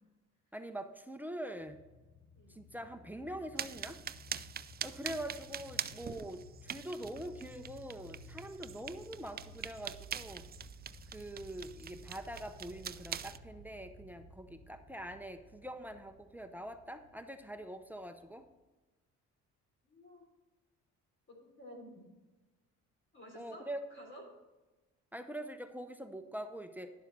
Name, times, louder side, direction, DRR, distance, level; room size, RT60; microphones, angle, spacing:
voice 1, 0.5-1.8 2.5-4.0 4.8-10.5 11.1-18.4 23.3-23.8 25.1-26.9, right 1 dB, 5° right, 8 dB, 0.8 m, -44 dB
sound 1, 1.6-18.6, left 1 dB, 60° left, 1.4 m, -55 dB
sound 2, 3.6-13.4, right 8 dB, 30° right, 0.4 m, -44 dB
voice 2, 19.8-20.2 21.3-22.0 23.1-23.6 23.9-24.2, equal, 40° left, -1 dB, 3.6 m, -53 dB
11.0 x 7.1 x 4.2 m, 1.2 s
cardioid pair, 90°, 30 cm